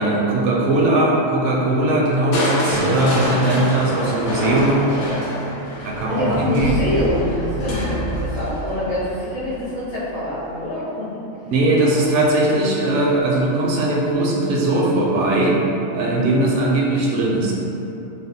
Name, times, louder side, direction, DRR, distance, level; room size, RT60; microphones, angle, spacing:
voice 1, 0.0-4.8 5.8-6.8 11.5-15.6 15.9-17.5, right 2 dB, 70° right, -3 dB, 0.8 m, -19 dB
Crushing, 2.3-10.3 11.8-12.3 12.8-12.9, equal, 90° left, 1.2 m, -26 dB
voice 2, 4.6-5.4 6.0-11.2 16.0-16.3, left 1 dB, 50° left, -15 dB, 1.1 m, -26 dB
3.2 x 2.0 x 4.1 m, 3.0 s
omnidirectional pair, 1.4 m